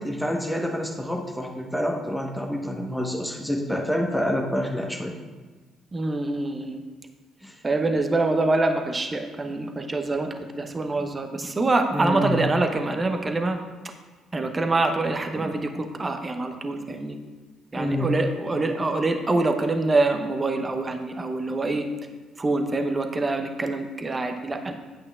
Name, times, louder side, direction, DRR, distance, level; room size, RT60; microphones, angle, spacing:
voice 1, 0.0-5.1 7.4-7.5 11.9-12.4 17.7-18.2, equal, ahead, 1 dB, 1.2 m, -27 dB
voice 2, 5.9-6.8 7.6-13.6 14.3-17.2 17.7-21.9 22.4-24.7, right 2 dB, 25° right, 6 dB, 0.8 m, -25 dB
10.5 x 8.5 x 2.4 m, 1.3 s
figure-of-eight pair, 45°, 0 cm